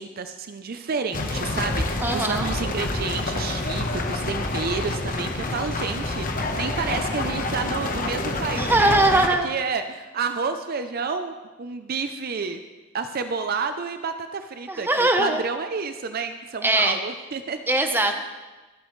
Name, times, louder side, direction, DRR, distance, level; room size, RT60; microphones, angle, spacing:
voice 1, 0.0-12.6 12.9-17.6, right 5 dB, 50° right, 8 dB, 0.5 m, -30 dB
sound 1, 1.1-9.3, left 2 dB, 45° left, 1.1 m, -27 dB
voice 2, 2.0-2.5 8.5-9.5 14.7-15.4 16.6-17.0 17.7-18.1, right 2 dB, 10° right, 5 dB, 0.9 m, -21 dB
23.5 x 8.3 x 3.2 m, 1.2 s
head